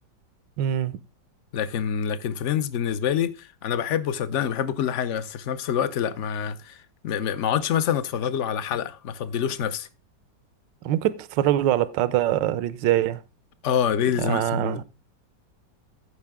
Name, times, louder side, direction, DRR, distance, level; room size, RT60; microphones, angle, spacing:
voice 1, 0.6-1.0 10.8-13.2 14.2-14.8, right 12 dB, 75° right, 1.3 m, -23 dB
voice 2, 1.5-9.9 13.6-14.8, left 8 dB, 55° left, 0.8 m, -26 dB
15.0 x 5.4 x 3.5 m
omnidirectional pair, 2.0 m